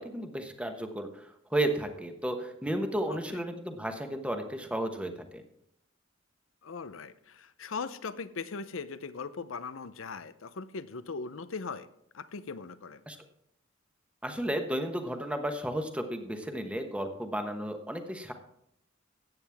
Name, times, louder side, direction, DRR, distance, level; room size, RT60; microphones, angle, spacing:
voice 1, 0.0-5.4 13.1-13.2 14.2-18.3, right 1 dB, 5° right, 6 dB, 1.1 m, -33 dB
voice 2, 6.6-11.9 12.1-13.0, left 4 dB, 80° left, 14 dB, 0.7 m, -39 dB
14.5 x 9.1 x 3.5 m, 0.77 s
head